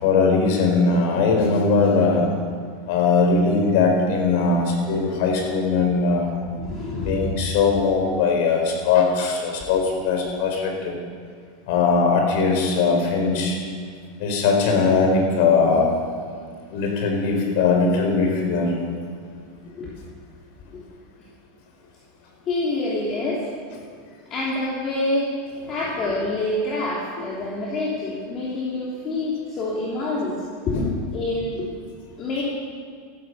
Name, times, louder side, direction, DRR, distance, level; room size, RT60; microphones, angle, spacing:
voice 1, 0.0-2.2 2.9-6.3 6.9-11.0 11.7-13.6 14.2-15.9 16.7-18.7 30.7-30.9, left 4 dB, 60° left, 2 dB, 4.4 m, -20 dB
voice 2, 6.6-7.3 19.7-19.9 20.7-20.8 22.5-23.4 24.3-25.3 25.7-30.4 30.7-30.8 31.1-31.7 32.2-32.4, left 2 dB, 30° left, -5 dB, 3.1 m, -26 dB
14.5 x 12.5 x 6.5 m, 2.2 s
supercardioid pair, 140°, 0 cm